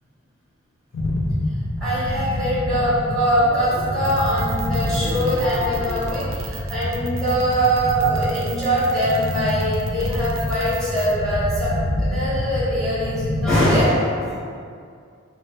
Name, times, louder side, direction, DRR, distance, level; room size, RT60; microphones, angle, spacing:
sound 1, 0.9-13.9, left 1 dB, 80° left, 0.4 m, -27 dB
voice 1, 1.8-11.7 12.0-14.4, equal, ahead, -11 dB, 1.0 m, -22 dB
sound 2, 4.0-11.2, right 7 dB, 90° right, 0.4 m, -38 dB
3.2 x 2.1 x 2.8 m, 2.2 s
head